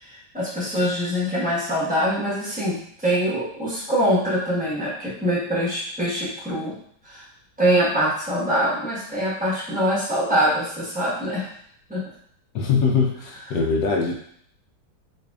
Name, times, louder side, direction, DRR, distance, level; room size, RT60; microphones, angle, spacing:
voice 1, 0.0-6.7 7.0-7.2 7.6-11.5 11.9-12.0, equal, 5° right, -9 dB, 0.6 m, -24 dB
voice 2, 12.5-14.1, left 5 dB, 90° left, 0 dB, 0.8 m, -22 dB
4.7 x 2.7 x 2.3 m, 0.64 s
omnidirectional pair, 2.3 m